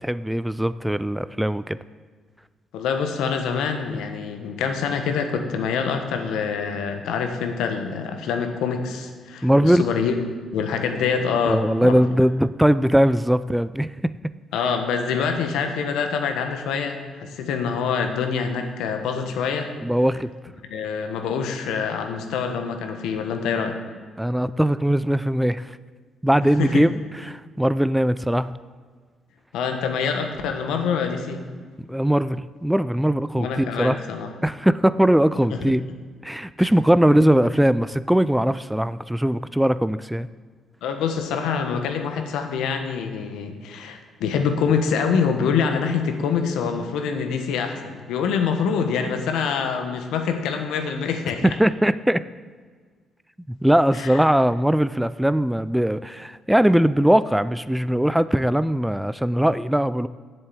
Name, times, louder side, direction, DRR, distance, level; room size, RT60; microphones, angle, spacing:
voice 1, 0.0-1.8 9.4-9.8 11.5-14.3 19.8-20.3 24.2-25.7 26.2-26.9 27.3-28.5 31.9-34.0 34.4-35.8 36.2-40.3 51.4-52.2 53.5-60.1, right 1 dB, 5° right, 15 dB, 0.3 m, -20 dB
voice 2, 2.7-10.1 10.5-12.0 14.5-19.7 20.7-23.8 26.6-26.9 29.5-31.4 33.4-34.3 35.5-35.6 36.6-36.7 40.8-51.5 53.9-54.2, left 6 dB, 90° left, 5 dB, 1.3 m, -25 dB
7.8 x 7.7 x 8.4 m, 1.5 s
cardioid pair, 90°, 0 cm